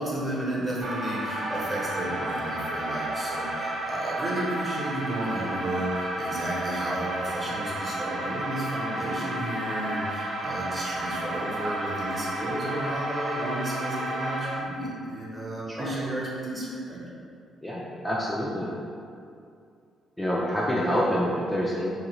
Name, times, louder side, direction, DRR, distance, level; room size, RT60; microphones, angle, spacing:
voice 1, 0.0-17.0, right 1 dB, 25° right, -6 dB, 0.9 m, -32 dB
sound 1, 0.8-14.6, right 1 dB, 55° right, 0.4 m, -32 dB
voice 2, 17.6-18.7 20.2-21.9, equal, 10° left, -5 dB, 0.4 m, -27 dB
3.1 x 2.5 x 3.0 m, 2.4 s
cardioid pair, 90°, 0 cm